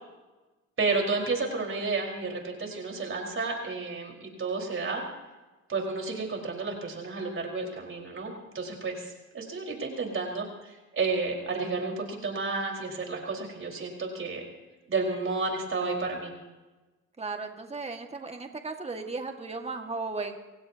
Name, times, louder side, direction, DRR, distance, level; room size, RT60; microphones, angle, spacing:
voice 1, 0.8-5.0 5.7-14.4 14.9-16.3, right 3 dB, 45° right, 0 dB, 4.7 m, -31 dB
voice 2, 17.2-20.4, right 3 dB, 20° right, 4 dB, 1.9 m, -35 dB
29.0 x 16.0 x 2.9 m, 1.2 s
cardioid pair, 90°, 30 cm